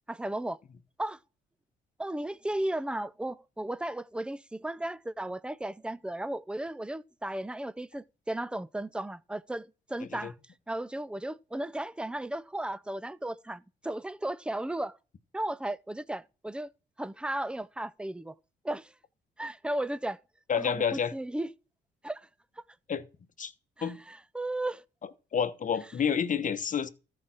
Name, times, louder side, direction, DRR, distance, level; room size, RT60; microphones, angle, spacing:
voice 1, 0.1-0.6 1.0-1.2 2.0-10.4 10.7-15.0 15.3-16.7 17.0-18.3 18.6-18.9 19.4-20.2 20.6-21.5 22.0-22.2 22.6-22.7 23.8-24.8, right 1 dB, 5° right, 0.5 m, -35 dB
voice 2, 20.5-21.1 22.9-23.0 23.4-23.5 23.8-24.0 25.3-26.9, left 7 dB, 40° left, 1.1 m, -29 dB
14.0 x 4.9 x 5.9 m
cardioid pair, 90°, 20 cm